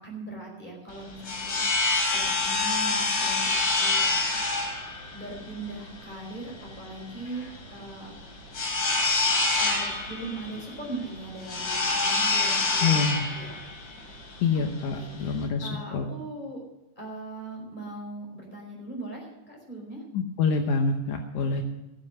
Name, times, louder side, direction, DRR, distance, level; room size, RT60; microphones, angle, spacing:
voice 1, 0.0-3.4 3.8-4.1 5.1-8.1 9.6-13.0 13.3-13.6 14.5-14.7 15.0-16.6 17.0-20.0, right 2 dB, 15° left, -1 dB, 4.9 m, -40 dB
sound 1, 0.9-15.5, left 3 dB, 40° left, 3.1 m, -27 dB
voice 2, 12.8-13.2 14.4-16.1 20.1-21.6, left 4 dB, 75° left, 3 dB, 2.4 m, -26 dB
15.5 x 7.7 x 7.5 m, 0.99 s
omnidirectional pair, 3.5 m